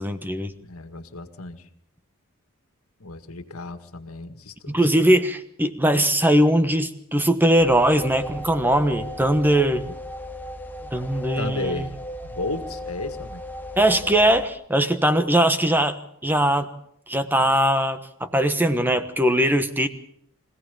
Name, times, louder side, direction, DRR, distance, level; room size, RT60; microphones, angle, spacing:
voice 1, 0.0-0.5 4.7-9.9 10.9-11.9 13.8-16.0 16.2-16.7 17.1-19.9, right 1 dB, 10° right, 10 dB, 1.2 m, -20 dB
voice 2, 0.6-1.7 3.0-4.9 11.4-11.9 12.2-13.4, left 2 dB, 90° left, 9 dB, 1.9 m, -34 dB
sound 1, 7.6-14.5, left 1 dB, 10° left, 1.3 m, -35 dB
25.0 x 16.5 x 7.0 m, 0.71 s
head